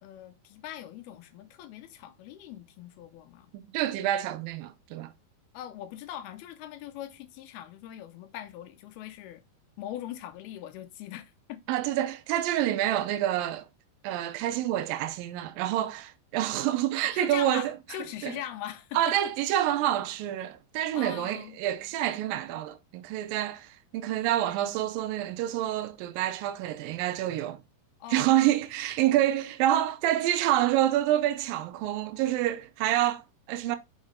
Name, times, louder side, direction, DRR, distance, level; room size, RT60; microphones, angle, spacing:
voice 1, 0.0-3.5 5.5-9.4 9.8-11.6 17.1-19.2 20.9-21.6 28.0-28.3, left 11 dB, 80° left, 2.5 m, -41 dB
voice 2, 3.5-5.1 11.7-13.7 14.0-17.7 18.2-18.4 18.9-27.6 28.1-33.8, right 13 dB, 80° right, 2.1 m, -27 dB
6.2 x 5.4 x 3.7 m
omnidirectional pair, 4.8 m